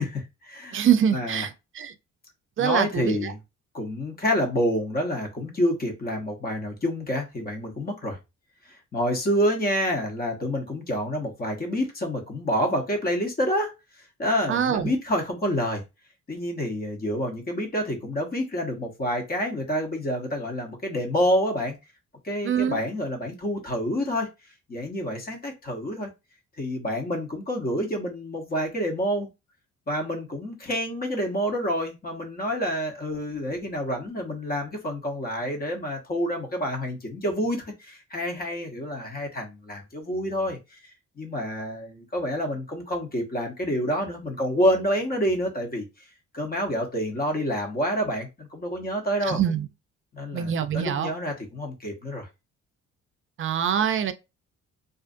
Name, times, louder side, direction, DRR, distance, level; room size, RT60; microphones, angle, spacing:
voice 1, 0.0-0.8 1.1-1.5 2.6-3.4 3.7-8.2 8.7-13.7 14.2-15.8 16.3-21.7 22.2-24.3 24.7-26.1 26.6-29.3 29.9-40.8 41.2-45.8 46.3-49.4 50.1-52.3, equal, 30° left, 0.9 m, -28 dB
voice 2, 0.7-1.9 2.6-3.3 14.5-14.9 22.4-22.8 49.3-49.7 50.3-51.1 53.4-54.1, right 8 dB, 45° right, 0.4 m, -24 dB
2.5 x 2.4 x 2.5 m
cardioid pair, 90°, 30 cm